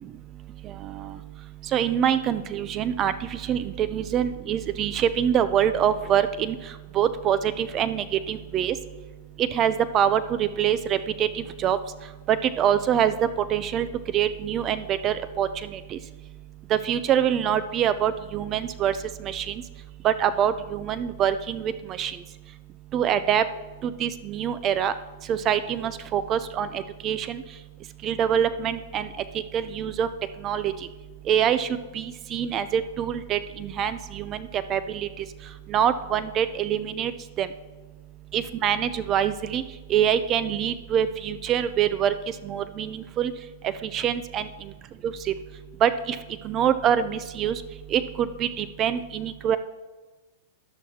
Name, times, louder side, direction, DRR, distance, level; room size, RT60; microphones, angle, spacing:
voice 1, 1.7-6.6 6.9-8.8 9.4-11.8 12.3-13.1 13.5-13.9 14.1-15.5 15.9-16.0 16.7-18.9 19.2-19.5 20.0-21.7 22.0-22.1 22.9-23.4 23.8-24.9 25.3-27.4 28.0-29.1 29.5-30.1 30.4-30.7 31.3-31.7 31.9-32.0 32.3-35.1 35.7-37.1 37.4-37.5 38.3-39.6 39.9-42.1 42.4-43.3 43.8-44.5 45.0-45.1 45.8-46.2 46.4-47.6 47.9-49.6, right 9 dB, 25° right, 13 dB, 0.5 m, -25 dB
12.5 x 11.0 x 2.8 m, 1.2 s
supercardioid pair, 155°, 0 cm